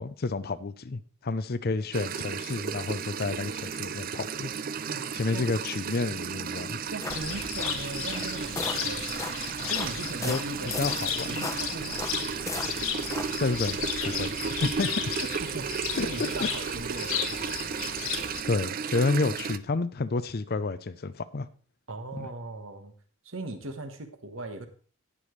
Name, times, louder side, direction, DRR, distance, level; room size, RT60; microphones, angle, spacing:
voice 1, 0.0-4.5 5.1-6.8 10.2-10.4 10.8-11.5 13.4-13.8 14.0-14.3 14.6-14.9 16.0-16.1 16.4-16.5 18.5-21.5 22.1-22.3, left 3 dB, 45° left, 0.5 m, -30 dB
sound 1, 1.9-19.6, right 7 dB, 40° right, 0.4 m, -34 dB
voice 2, 4.8-5.5 6.9-9.1 9.6-10.8 11.2-12.0 13.7-13.8 15.2-17.6 21.9-22.9 23.2-24.7, right 2 dB, 60° right, 1.4 m, -39 dB
sound 2, 6.8-13.6, left 3 dB, 15° left, 0.9 m, -38 dB
Cricket, 7.1-18.4, left 8 dB, 70° left, 1.2 m, -34 dB
18.5 x 7.0 x 3.2 m
head